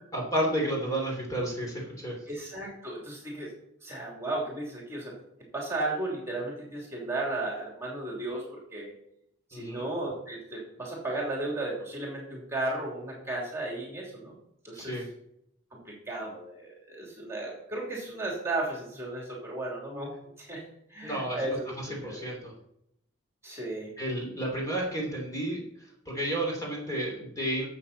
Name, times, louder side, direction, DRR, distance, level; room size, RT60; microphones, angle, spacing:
voice 1, 0.1-2.2 9.5-9.8 14.7-15.0 21.0-21.6 21.9-22.5 24.0-25.6 26.0-27.7, right 1 dB, 15° left, -2 dB, 3.2 m, -31 dB
voice 2, 2.3-3.5 3.8-5.1 5.5-8.9 9.5-14.3 14.6-15.0 15.7-20.6 20.9-22.2 23.4-23.9, right 2 dB, 15° right, -3 dB, 3.0 m, -35 dB
12.5 x 7.7 x 4.2 m, 0.75 s
head